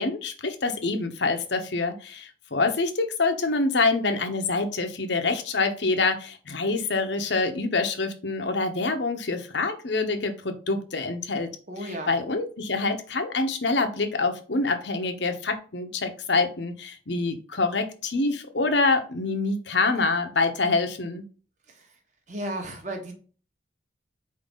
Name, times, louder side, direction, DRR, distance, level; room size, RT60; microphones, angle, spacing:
voice 1, 0.0-11.5 11.8-21.2, left 3 dB, 70° left, 6 dB, 1.0 m, -26 dB
voice 2, 11.7-12.1 21.7-21.9 22.3-23.1, right 1 dB, 40° right, 3 dB, 1.4 m, -34 dB
4.7 x 3.9 x 5.5 m, 0.39 s
head